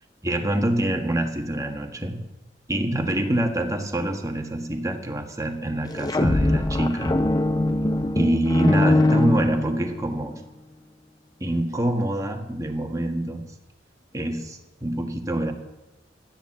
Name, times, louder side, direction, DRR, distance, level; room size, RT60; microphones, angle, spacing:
voice 1, 0.2-2.2 2.7-7.2 8.1-10.4 11.4-13.4 14.1-15.5, right 1 dB, 20° right, 4 dB, 1.4 m, -25 dB
sound 1, 5.9-10.1, left 2 dB, 20° left, 0.7 m, -22 dB
13.0 x 10.5 x 7.4 m, 1.0 s
head